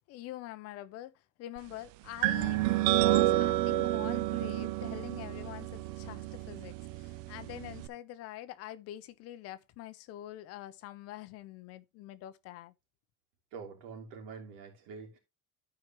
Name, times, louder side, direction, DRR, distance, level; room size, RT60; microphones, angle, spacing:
voice 1, 0.1-12.7, left 14 dB, 40° left, 0.6 m, -45 dB
sound 1, 2.2-7.9, right 16 dB, 50° right, 0.5 m, -30 dB
voice 2, 13.5-15.2, right 5 dB, 85° right, 3.1 m, -45 dB
13.0 x 4.8 x 2.9 m
cardioid pair, 170°, 38 cm